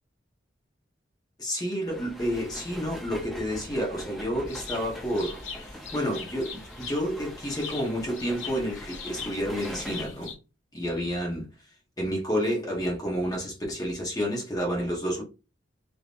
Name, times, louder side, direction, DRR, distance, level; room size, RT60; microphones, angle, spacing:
voice 1, 1.4-10.3 10.7-11.5 12.0-15.2, equal, 20° left, 0.9 m, -30 dB
sound 1, 1.9-10.0, equal, ahead, 0.6 m, -43 dB
sound 2, 4.5-10.3, left 5 dB, 70° left, 0.7 m, -41 dB
3.5 x 2.8 x 2.4 m
head